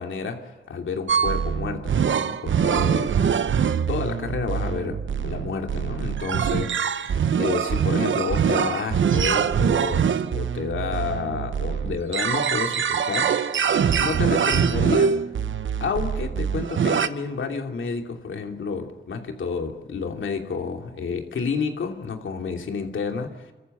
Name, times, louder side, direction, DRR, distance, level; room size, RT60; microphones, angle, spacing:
voice 1, 0.0-3.1 3.9-10.0 10.3-15.1 15.8-23.4, left 5 dB, 80° left, 4 dB, 2.9 m, -30 dB
sound 1, 1.1-17.1, right 7 dB, 75° right, 0.9 m, -23 dB
26.5 x 14.5 x 9.3 m, 1.2 s
cardioid pair, 60°, 20 cm